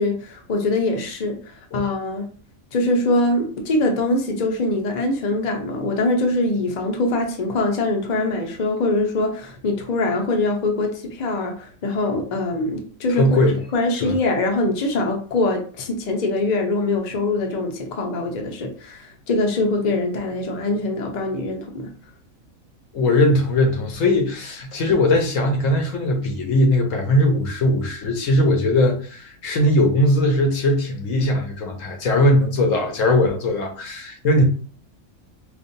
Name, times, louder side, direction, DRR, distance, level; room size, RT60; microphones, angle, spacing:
voice 1, 0.0-2.3 2.7-13.3 13.7-21.9, left 2 dB, 40° left, 0.7 m, -23 dB
voice 2, 13.1-13.6 14.0-14.1 22.9-34.4, left 1 dB, 70° left, 1.1 m, -19 dB
4.7 x 2.5 x 2.6 m
omnidirectional pair, 1.5 m